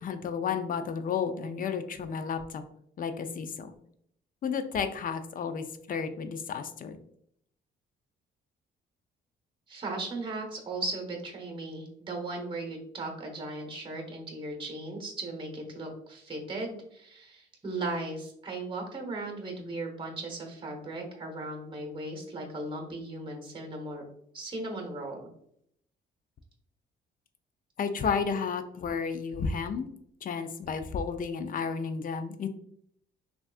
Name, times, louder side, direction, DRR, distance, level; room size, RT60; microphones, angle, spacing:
voice 1, 0.0-2.4 3.0-3.7 4.4-7.0 27.8-29.9 30.2-32.5, left 6 dB, 45° left, 9 dB, 0.4 m, -32 dB
voice 2, 9.7-24.0 24.3-25.2, right 2 dB, 25° right, 2 dB, 0.9 m, -37 dB
3.4 x 2.3 x 2.3 m, 0.70 s
cardioid pair, 90°, 20 cm